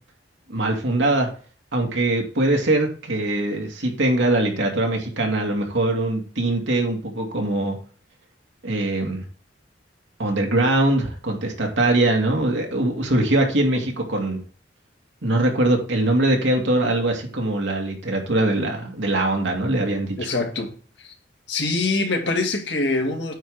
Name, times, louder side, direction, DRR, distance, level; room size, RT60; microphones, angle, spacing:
voice 1, 0.5-1.3 1.7-7.8 8.6-9.3 10.2-14.4 15.2-20.3, right 2 dB, 75° right, 2.4 m, -22 dB
voice 2, 20.2-20.7 21.0-21.1 21.5-23.3, left 3 dB, 70° left, 2.1 m, -24 dB
9.0 x 3.8 x 6.6 m
head